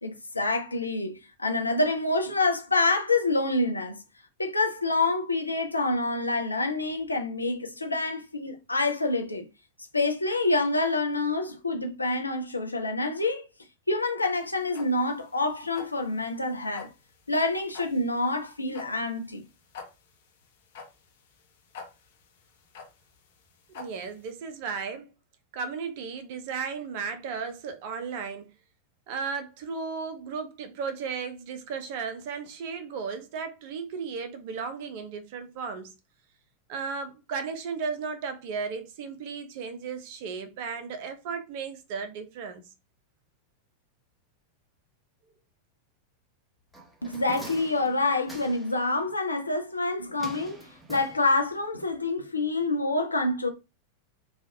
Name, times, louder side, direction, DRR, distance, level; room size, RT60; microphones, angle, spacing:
voice 1, 0.0-4.0 4.4-9.5 9.9-13.5 13.9-16.9 17.3-19.4 47.0-53.5, left 2 dB, 80° left, 0.5 m, -27 dB
sound 1, 14.3-24.3, left 5 dB, 55° left, 0.8 m, -47 dB
voice 2, 23.7-25.1 25.5-28.5 29.1-35.9 36.7-42.6, right 5 dB, 50° right, 0.6 m, -35 dB
sound 2, 46.7-48.8 50.2-51.6 51.9-52.0, right 1 dB, ahead, 0.9 m, -45 dB
3.1 x 2.3 x 2.7 m
figure-of-eight pair, 90°, 0 cm